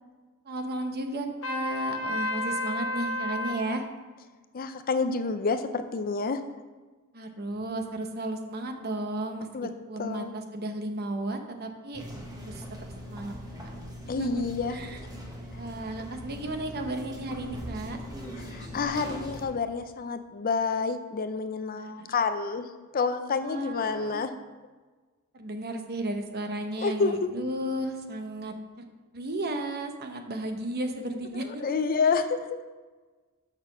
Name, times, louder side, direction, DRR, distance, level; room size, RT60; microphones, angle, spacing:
voice 1, 0.4-3.8 7.1-9.5 9.9-12.0 12.4-12.6 13.1-13.3 14.1-14.4 14.7-15.0 15.6-18.0 21.8-22.1 23.4-24.2 25.3-28.9 29.1-31.6, right 1 dB, 45° right, 5 dB, 0.9 m, -34 dB
Trumpet, 1.4-3.7, left 2 dB, 60° left, 1.1 m, -31 dB
voice 2, 4.5-6.4 9.5-9.7 10.0-10.3 14.1-14.8 18.5-22.7 22.9-24.3 26.8-27.3 31.4-32.6, left 4 dB, 40° left, 9 dB, 0.5 m, -28 dB
sound 1, 11.9-19.5, equal, 15° right, 1.3 m, -41 dB
6.8 x 5.8 x 5.9 m, 1.3 s
head